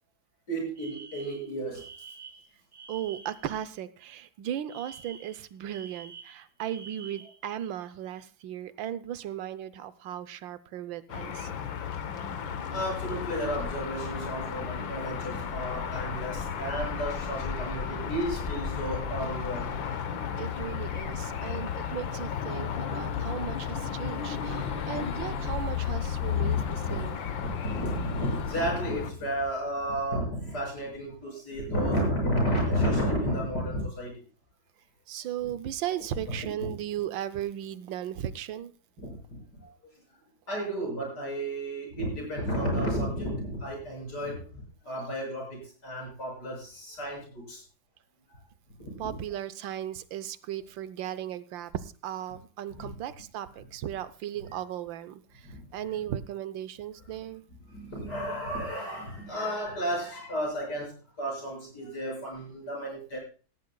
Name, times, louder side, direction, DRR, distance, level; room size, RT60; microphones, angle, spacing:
voice 1, 0.5-1.9 12.7-19.7 26.3-27.0 27.4-34.2 36.4-36.5 39.0-39.7 40.5-47.6 48.3-48.4 48.8-49.2 52.7-52.9 55.4-55.7 57.7-63.2, equal, 60° left, -1 dB, 7.4 m, -32 dB
Alarm, 0.8-3.5 4.7-7.4, right 5 dB, 20° right, 2.3 m, -48 dB
voice 2, 2.9-11.5 20.4-27.3 35.1-38.7 49.0-57.4, right 11 dB, 80° right, 13 dB, 1.5 m, -36 dB
sound 1, 11.1-29.1, left 8 dB, 80° left, 1.8 m, -34 dB
sound 2, 13.2-28.7, left 4 dB, 45° left, 1.0 m, -41 dB
18.0 x 13.5 x 2.3 m, 0.36 s
omnidirectional pair, 2.0 m